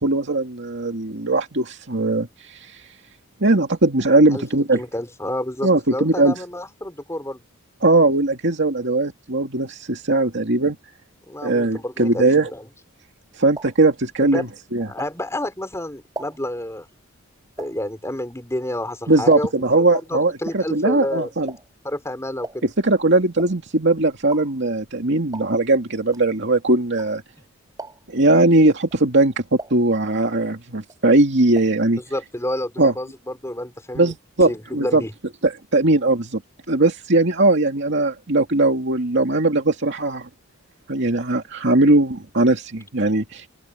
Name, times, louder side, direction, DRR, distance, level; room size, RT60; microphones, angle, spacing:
voice 1, 0.0-2.8 3.4-4.8 5.6-6.3 7.8-10.8 11.4-12.5 13.4-14.9 19.1-21.5 22.6-27.2 28.1-32.0 32.8-32.9 33.9-35.0 35.4-36.4 36.7-40.3 40.9-43.5, right 2 dB, 60° right, 2.4 m, -19 dB
voice 2, 4.7-7.4 11.3-12.3 12.5-12.7 14.2-14.5 14.8-16.9 17.6-19.5 19.8-21.3 21.8-22.6 32.1-34.1 34.5-35.1, left 1 dB, 15° left, 4.7 m, -29 dB
sound 1, 13.1-15.5 15.9-19.8 20.1-27.4 27.7-28.3 28.8-30.5 30.8-31.9 32.1-32.2 32.5-32.6, right 2 dB, 20° right, 4.7 m, -40 dB
open air
head